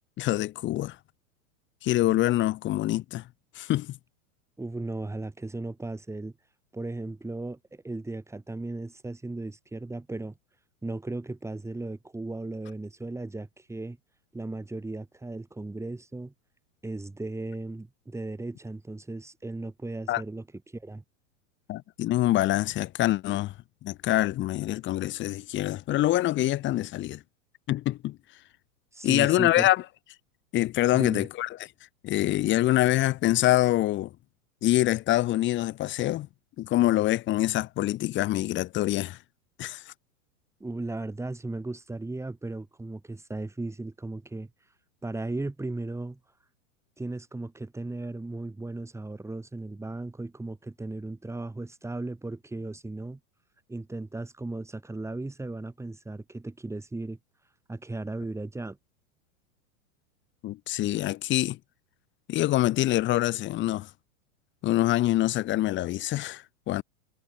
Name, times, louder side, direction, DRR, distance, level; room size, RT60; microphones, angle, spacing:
voice 1, 0.2-1.0 1.8-3.2 3.5-3.9 20.1-20.2 21.7-23.5 23.8-27.2 27.7-28.2 29.0-29.8 30.5-31.5 32.0-34.1 34.6-36.3 36.6-39.2 39.6-39.9 60.4-61.6 62.3-63.9 64.6-66.8, left 15 dB, 25° left, 0.9 m, -25 dB
voice 2, 4.6-6.3 6.7-10.3 10.8-14.0 14.3-16.3 16.8-21.0 28.9-29.7 30.9-31.3 40.6-44.5 45.0-46.2 47.0-53.2 53.7-57.2 57.7-58.8, right 2 dB, 5° right, 5.7 m, -36 dB
hypercardioid pair, 120°, 42 cm